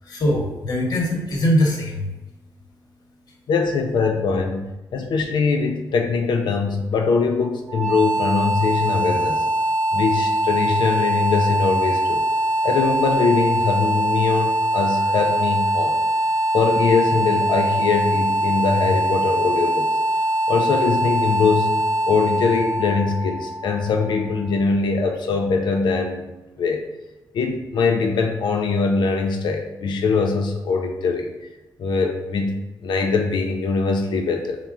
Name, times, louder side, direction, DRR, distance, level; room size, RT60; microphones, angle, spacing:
voice 1, 0.0-2.1, equal, 55° left, -1 dB, 1.0 m, -21 dB
voice 2, 3.5-9.4 9.9-12.3 12.6-16.0 16.5-19.9 20.5-26.2 26.6-26.9 27.3-31.3 31.8-34.6, left 4 dB, 80° left, 4 dB, 0.5 m, -22 dB
sound 1, 7.7-24.6, right 1 dB, 10° left, 1.0 m, -22 dB
5.8 x 2.1 x 3.6 m, 1.1 s
wide cardioid pair, 130°, 8 cm